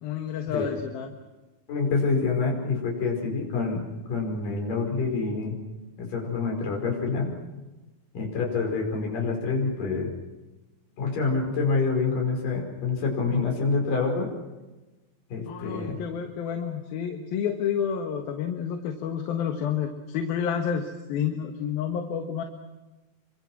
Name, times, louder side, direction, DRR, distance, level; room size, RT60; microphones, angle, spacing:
voice 1, 0.0-1.1 15.5-22.4, left 8 dB, 80° left, 4 dB, 3.3 m, -30 dB
voice 2, 1.7-3.8 4.1-5.6 6.0-7.3 8.1-10.1 11.0-14.3 15.3-16.0, left 4 dB, 60° left, 1 dB, 6.7 m, -27 dB
28.0 x 25.0 x 6.2 m, 1.1 s
omnidirectional pair, 4.3 m